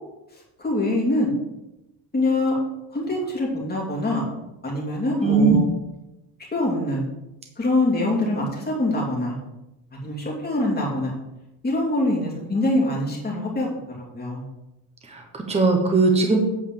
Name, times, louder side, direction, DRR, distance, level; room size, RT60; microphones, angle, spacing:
voice 1, 0.6-1.3 2.1-2.6 2.9-4.2 4.6-5.6 6.5-7.0 7.6-9.4 10.0-11.1 11.6-13.7 14.0-14.4, left 1 dB, 20° left, -3 dB, 2.6 m, -24 dB
voice 2, 5.2-5.6 15.1-16.4, right 4 dB, 15° right, 2 dB, 1.0 m, -19 dB
8.5 x 4.8 x 7.4 m, 0.92 s
cardioid pair, 180°, 47 cm